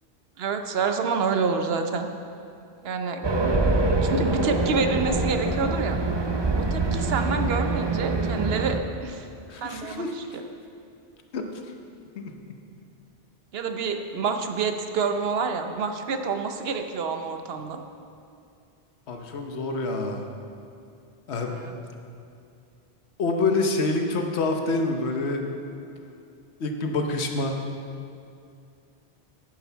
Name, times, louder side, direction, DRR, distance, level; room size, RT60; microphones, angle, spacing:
voice 1, 0.4-2.1 2.8-3.3 4.0-6.0 6.6-9.3 9.6-10.4 13.5-17.8 21.5-21.7, right 5 dB, 65° right, 6 dB, 1.0 m, -28 dB
Race car auto racing, 3.2-8.8, right 2 dB, 30° right, 0.5 m, -25 dB
voice 2, 9.5-10.1 11.3-11.5 12.2-12.3 19.1-20.3 21.3-21.5 23.2-25.4 26.6-27.7, left 3 dB, 75° left, 4 dB, 1.2 m, -26 dB
11.5 x 9.8 x 4.5 m, 2.5 s
omnidirectional pair, 1.1 m